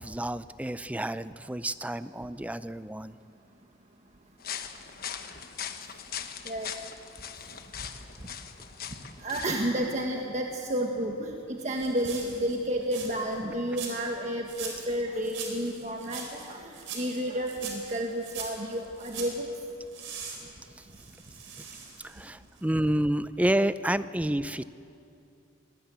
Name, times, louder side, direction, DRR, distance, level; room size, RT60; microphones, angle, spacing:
voice 1, 0.0-3.2 13.4-13.5 20.8-20.9 21.6-21.7 22.0-24.6, right 1 dB, 5° right, 14 dB, 0.4 m, -29 dB
sound 1, 4.4-9.7, left 8 dB, 50° left, 1.2 m, -40 dB
voice 2, 9.2-19.5, right 1 dB, 35° right, 1 dB, 1.5 m, -31 dB
sound 2, 11.6-13.4 13.7-14.2 14.5-15.0 15.2-19.4 19.9-22.3 22.6-22.7, right 6 dB, 90° right, 4.4 m, -42 dB
22.0 x 19.5 x 8.3 m, 2.6 s
head